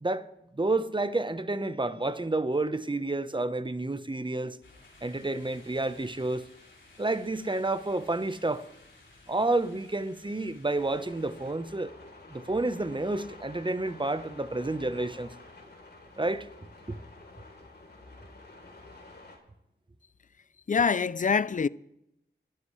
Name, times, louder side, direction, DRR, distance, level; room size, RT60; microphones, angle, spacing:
voice 1, 0.0-4.6 5.0-6.4 7.0-8.7 9.3-11.9 12.3-15.3 16.2-16.5 16.9-17.0, right 2 dB, 25° right, 1.1 m, -30 dB
sound 1, 4.6-11.5, left 2 dB, 75° left, 3.9 m, -56 dB
sound 2, 10.7-19.4, left 2 dB, 60° left, 3.7 m, -50 dB
voice 2, 20.7-21.7, left 6 dB, 40° left, 0.5 m, -25 dB
26.5 x 12.5 x 3.3 m
cardioid pair, 45°, 20 cm